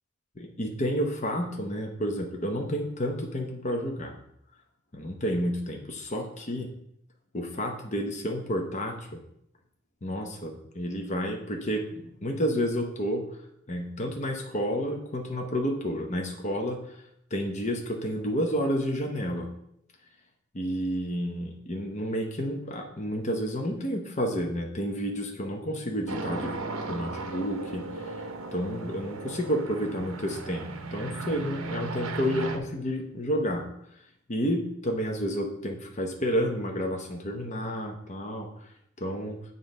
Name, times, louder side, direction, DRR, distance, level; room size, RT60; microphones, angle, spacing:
voice 1, 0.4-4.1 4.9-6.7 7.3-9.2 10.0-13.3 13.7-16.8 17.3-19.5 20.5-26.5 26.8-28.1 28.5-33.6 34.3-38.5 39.0-39.4, equal, 30° left, 2 dB, 0.8 m, -30 dB
sound 1, 26.1-32.6, right 3 dB, 60° right, 0.7 m, -36 dB
7.8 x 3.9 x 5.3 m, 0.75 s
head